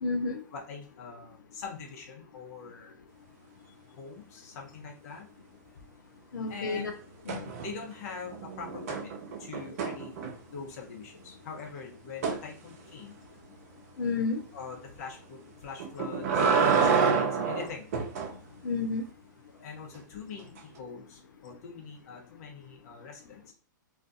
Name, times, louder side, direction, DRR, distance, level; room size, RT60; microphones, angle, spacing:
voice 1, 0.0-0.4 6.3-6.9 7.3-7.5 14.0-14.4 18.6-19.0, left 4 dB, 75° left, 6 dB, 0.4 m, -30 dB
voice 2, 0.5-3.0 4.0-5.3 6.5-6.9 7.6-9.1 9.4-10.1 10.5-13.2 14.5-17.9 19.6-23.5, left 5 dB, 50° left, 0 dB, 0.9 m, -43 dB
sound 1, 7.3-7.9 8.2-10.6 12.2-12.4 15.8-18.3 20.6-20.7, right 5 dB, 50° right, 0.5 m, -28 dB
2.4 x 2.3 x 2.5 m, 0.41 s
figure-of-eight pair, 115°, 10 cm